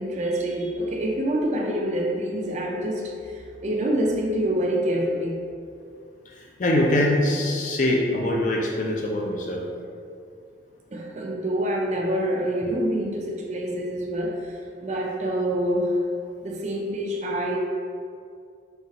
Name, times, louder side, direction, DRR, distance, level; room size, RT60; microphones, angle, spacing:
voice 1, 0.0-5.4 10.9-16.0 16.4-17.6, right 1 dB, 35° right, 0 dB, 0.4 m, -26 dB
voice 2, 6.3-9.6, left 1 dB, 40° left, 0 dB, 0.4 m, -23 dB
5.5 x 2.4 x 2.8 m, 2.3 s
head